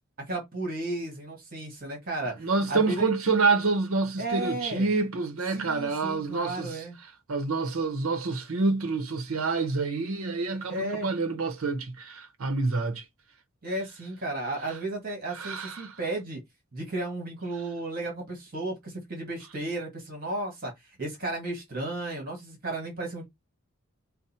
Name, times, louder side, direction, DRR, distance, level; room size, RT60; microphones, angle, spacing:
voice 1, 0.3-3.1 4.2-4.9 5.5-7.0 10.7-11.1 13.6-16.4 16.7-20.7 21.0-23.2, right 2 dB, 45° right, 1.7 m, -34 dB
voice 2, 2.4-6.8 7.3-13.0 15.3-16.0, right 3 dB, 90° right, 0.8 m, -27 dB
5.2 x 2.1 x 4.2 m
head